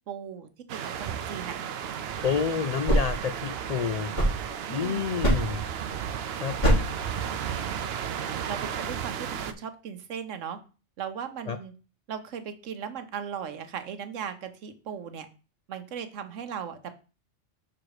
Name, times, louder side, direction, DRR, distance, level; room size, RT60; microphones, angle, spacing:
voice 1, 0.1-1.6 4.7-5.1 8.1-10.6 11.0-11.7 12.1-15.3 15.7-16.9, right 7 dB, 85° right, 9 dB, 1.2 m, -37 dB
sound 1, 0.7-9.5, right 8 dB, 65° right, 0.7 m, -34 dB
voice 2, 2.2-4.1 4.7-5.6 6.4-6.9 11.5-11.6, left 6 dB, 75° left, 9 dB, 0.3 m, -29 dB
sound 2, 2.9-4.8 5.2-5.7 6.6-7.1, right 1 dB, 35° left, 4.1 m, -25 dB
6.3 x 4.0 x 4.8 m, 0.34 s
omnidirectional pair, 1.3 m